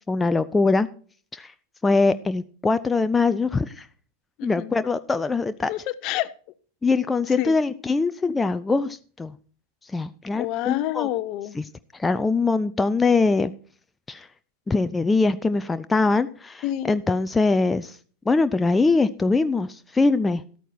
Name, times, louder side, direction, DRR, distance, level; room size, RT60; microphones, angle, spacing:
voice 1, 0.1-0.9 1.3-1.5 1.8-3.9 4.4-5.7 6.8-9.3 9.8-11.1 11.6-11.7 11.9-13.5 14.1-14.3 14.7-18.0 18.3-20.4, left 3 dB, 10° left, 12 dB, 0.4 m, -22 dB
voice 2, 4.4-4.7 5.7-6.3 7.4-7.6 10.3-11.6 16.6-16.9, left 14 dB, 40° left, 17 dB, 0.7 m, -28 dB
13.0 x 9.0 x 4.3 m, 0.42 s
figure-of-eight pair, 90°, 0 cm